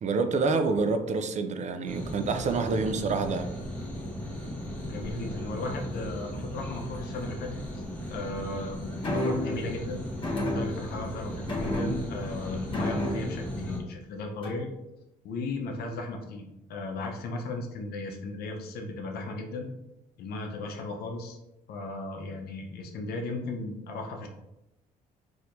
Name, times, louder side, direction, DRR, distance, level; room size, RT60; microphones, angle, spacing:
voice 1, 0.0-3.5, right 4 dB, 45° right, 0.4 m, -27 dB
sound 1, 1.9-13.8, equal, 10° left, 1.2 m, -37 dB
voice 2, 4.7-7.6 8.1-10.0 10.5-14.7 15.2-19.7 20.2-21.4 21.7-24.3, left 2 dB, 75° left, 0.7 m, -36 dB
sound 2, 9.0-9.6 10.2-11.1 11.5-12.3 12.7-13.5 14.4-14.7, left 1 dB, 30° left, 1.4 m, -30 dB
4.2 x 2.9 x 2.6 m
cardioid pair, 75°, 16 cm